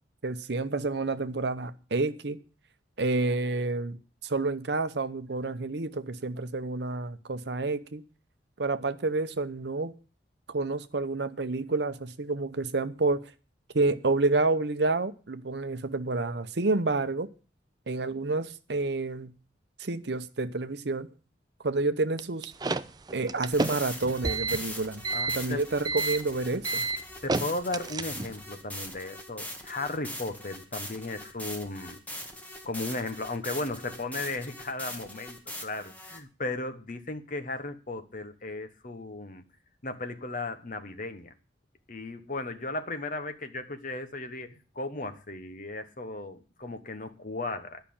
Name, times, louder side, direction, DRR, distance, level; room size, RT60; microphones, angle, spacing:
voice 1, 0.2-2.4 3.0-8.0 8.6-9.9 10.5-13.2 13.7-17.3 17.9-19.3 19.8-21.1 21.6-22.5 23.1-25.0 25.3-26.9, right 3 dB, 60° right, 0.8 m, -29 dB
sound 1, 22.2-28.4, right 3 dB, 20° right, 0.4 m, -31 dB
sound 2, 23.5-36.2, left 1 dB, 10° left, 1.6 m, -41 dB
voice 2, 25.1-25.6 27.2-32.0 32.6-39.4 39.8-41.3 41.9-47.8, left 2 dB, 45° left, 1.1 m, -36 dB
11.0 x 5.8 x 8.7 m
head